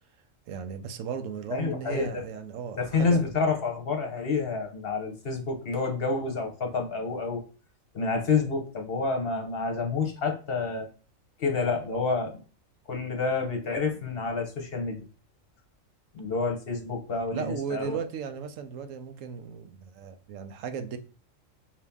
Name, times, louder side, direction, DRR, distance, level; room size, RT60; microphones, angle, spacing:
voice 1, 0.5-3.2 17.3-21.0, right 7 dB, 75° right, 0.9 m, -36 dB
voice 2, 1.5-2.2 2.8-7.4 7.9-10.9 11.4-12.4 12.9-15.0 16.1-18.0, left 4 dB, 50° left, 1.0 m, -28 dB
4.7 x 2.8 x 3.5 m
omnidirectional pair, 1.4 m